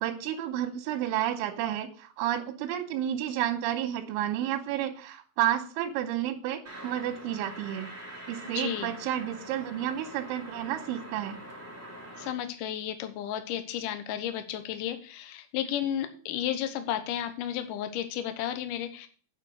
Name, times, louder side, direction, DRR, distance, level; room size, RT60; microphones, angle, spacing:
voice 1, 0.0-7.9 8.3-11.4, right 11 dB, 85° right, 3 dB, 3.5 m, -31 dB
sound 1, 6.6-12.3, right 1 dB, 5° right, 2.6 m, -44 dB
voice 2, 8.5-8.9 12.2-19.1, left 10 dB, 90° left, 8 dB, 1.9 m, -33 dB
9.6 x 5.6 x 6.4 m, 0.41 s
omnidirectional pair, 5.4 m